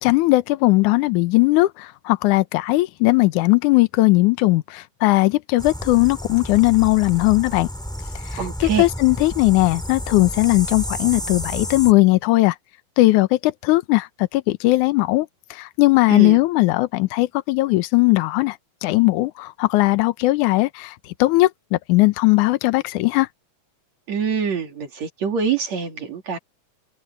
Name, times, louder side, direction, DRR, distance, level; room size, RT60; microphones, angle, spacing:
voice 1, 0.0-7.7 8.3-12.6 13.0-23.3, left 20 dB, 75° left, 2.2 m, -18 dB
sound 1, 5.6-11.9, equal, ahead, 2.7 m, -31 dB
voice 2, 8.4-8.9 16.1-16.4 24.1-26.4, right 7 dB, 60° right, 3.7 m, -25 dB
omnidirectional pair, 3.7 m